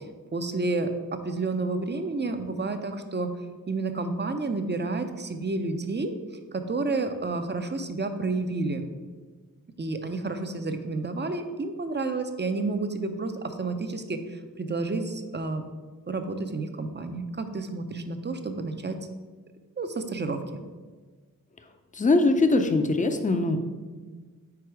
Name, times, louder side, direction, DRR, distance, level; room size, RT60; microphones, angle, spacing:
voice 1, 0.3-3.3 3.7-6.1 6.5-8.9 9.8-15.6 16.1-19.0 19.8-20.6, right 3 dB, 30° right, 7 dB, 0.5 m, -30 dB
voice 2, 21.9-23.6, left 2 dB, 25° left, 7 dB, 0.5 m, -22 dB
4.8 x 4.2 x 4.7 m, 1.4 s
wide cardioid pair, 60°, 34 cm